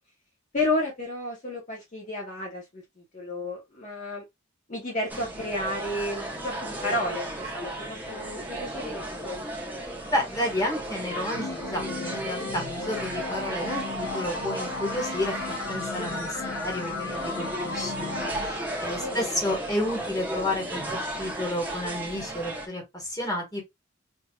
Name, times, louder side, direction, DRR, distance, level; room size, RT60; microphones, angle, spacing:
voice 1, 0.5-2.8 3.1-4.2 4.7-9.5 19.0-19.3, left 1 dB, 40° left, 0.9 m, -32 dB
sound 1, 5.1-22.7, right 1 dB, 10° right, 0.9 m, -35 dB
voice 2, 10.1-20.8 21.2-23.6, left 1 dB, 20° left, 1.5 m, -31 dB
sound 2, 11.3-18.5, left 3 dB, 90° left, 0.6 m, -35 dB
4.5 x 2.7 x 2.3 m
head